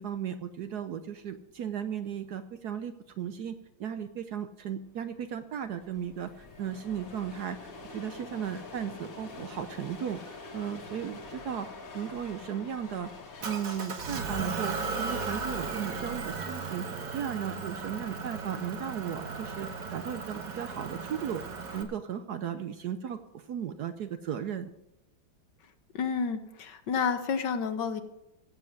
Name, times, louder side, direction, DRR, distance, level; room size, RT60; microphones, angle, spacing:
voice 1, 0.0-11.7 11.9-13.1 13.4-16.9 17.1-24.7, right 8 dB, 65° right, 9 dB, 1.1 m, -36 dB
sound 1, 5.1-5.2 5.4-13.9, left 3 dB, 45° left, 1.9 m, -46 dB
Motor vehicle (road) / Engine, 13.4-21.8, right 4 dB, 45° right, 1.7 m, -36 dB
voice 2, 25.9-28.0, left 6 dB, 65° left, 9 dB, 1.5 m, -30 dB
15.0 x 7.5 x 6.5 m, 0.87 s
omnidirectional pair, 2.2 m